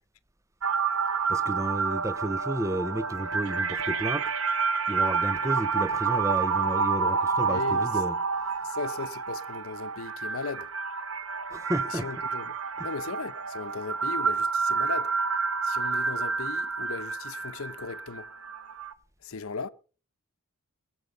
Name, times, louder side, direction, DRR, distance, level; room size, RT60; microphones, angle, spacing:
sound 1, 0.6-18.9, right 5 dB, 70° right, 1.0 m, -29 dB
voice 1, 1.3-4.3 4.9-8.2 11.5-12.1 12.8-12.9, right 1 dB, 15° right, 0.6 m, -32 dB
voice 2, 7.4-7.9 8.6-10.7 11.9-12.5 12.8-15.1 15.6-18.3 19.2-19.7, left 4 dB, 70° left, 0.8 m, -37 dB
21.5 x 8.0 x 5.5 m
head